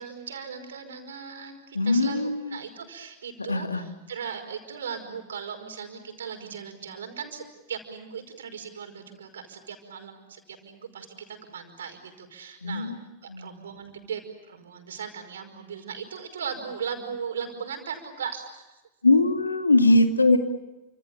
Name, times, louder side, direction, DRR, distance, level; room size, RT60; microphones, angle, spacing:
voice 1, 0.0-12.9 13.2-14.2 14.5-18.8, right 7 dB, 65° right, 6 dB, 5.3 m, -38 dB
voice 2, 1.7-2.6 3.5-3.8 12.6-13.0 13.3-13.5 19.0-20.4, left 2 dB, 80° left, 7 dB, 2.4 m, -21 dB
29.5 x 27.0 x 7.1 m, 1.0 s
figure-of-eight pair, 90°, 0 cm